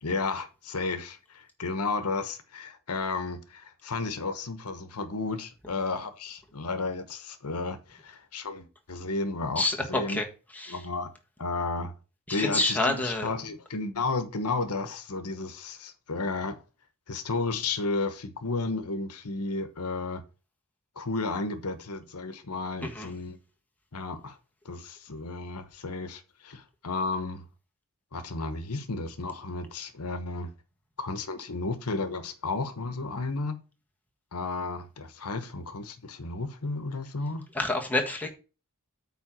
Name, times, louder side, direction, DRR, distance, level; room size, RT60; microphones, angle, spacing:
voice 1, 0.0-10.2 10.7-11.1 11.4-11.9 12.3-16.6 17.1-20.2 21.0-23.4 23.9-24.4 24.6-27.5 28.1-30.5 31.0-33.6 34.3-37.5, left 3 dB, 85° left, 1.1 m, -33 dB
voice 2, 9.6-10.3 10.5-10.8 12.3-13.3 22.8-23.1 37.5-38.3, left 2 dB, 5° left, 1.5 m, -28 dB
8.8 x 3.8 x 6.0 m
head